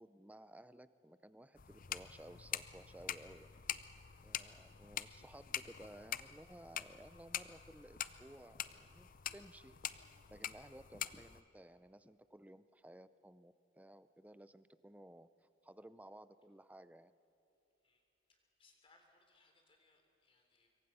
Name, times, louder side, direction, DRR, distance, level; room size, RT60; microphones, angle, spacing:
voice 1, 0.0-3.5 4.2-9.7 10.3-17.1, right 1 dB, 10° right, 14 dB, 0.5 m, -57 dB
sound 1, 1.5-11.4, left 10 dB, 45° left, 0.6 m, -45 dB
voice 2, 18.3-20.8, left 3 dB, 30° left, 3 dB, 3.4 m, -71 dB
26.0 x 23.0 x 5.6 m, 2.8 s
head